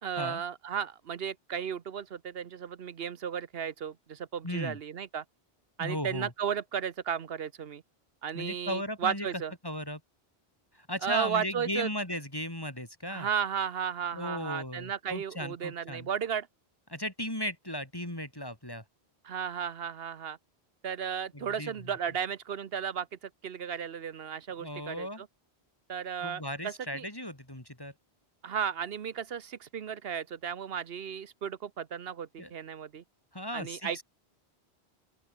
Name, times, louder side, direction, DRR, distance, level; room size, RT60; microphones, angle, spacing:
voice 1, 0.0-5.2 5.8-7.8 8.2-9.5 11.0-11.9 13.1-16.5 19.2-20.4 20.8-25.3 25.9-27.1 28.4-33.0 33.5-34.0, right 7 dB, 70° right, 1.1 m, -34 dB
voice 2, 4.4-4.8 5.8-6.3 8.3-9.3 9.6-10.0 10.8-13.3 14.1-16.1 16.9-18.8 21.3-21.7 24.6-25.2 26.2-27.9 32.4-32.5 33.3-34.0, equal, 20° left, 3.3 m, -36 dB
open air
omnidirectional pair, 1.1 m